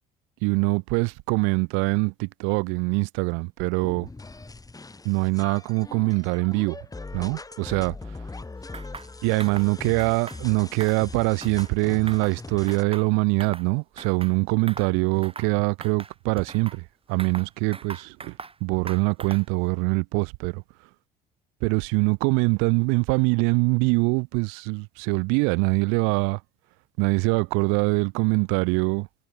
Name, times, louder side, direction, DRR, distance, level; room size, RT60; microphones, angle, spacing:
voice 1, 0.4-4.1 5.0-6.8 7.1-7.9 9.2-16.8 17.1-18.3 18.6-20.6 21.6-26.4 27.0-29.1, right 33 dB, 80° right, 1.3 m, -23 dB
sound 1, 3.8-12.8, left 3 dB, 15° left, 4.7 m, -41 dB
sound 2, 8.7-9.1 9.4-9.7 10.0-10.4 10.7-11.8 12.1-12.4 12.7-13.7 14.0-14.3 14.7-14.9 15.2-15.5 15.8-16.8 17.2-18.6 18.9-19.6, right 4 dB, 25° right, 6.3 m, -41 dB
supercardioid pair, 75°, 21 cm